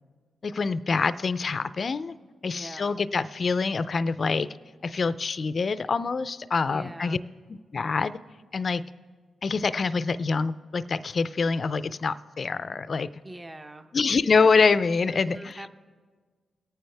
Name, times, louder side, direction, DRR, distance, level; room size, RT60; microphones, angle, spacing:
voice 1, 0.4-2.1 2.4-4.5 4.8-7.2 7.5-8.2 8.5-8.8 9.4-13.1 13.9-15.5, left 4 dB, 50° left, 15 dB, 0.5 m, -25 dB
voice 2, 2.4-3.0 6.6-7.2 13.2-13.9 15.1-15.7, right 1 dB, 20° right, 7 dB, 0.9 m, -42 dB
23.5 x 9.1 x 3.4 m, 1.5 s
cardioid pair, 55°, 0 cm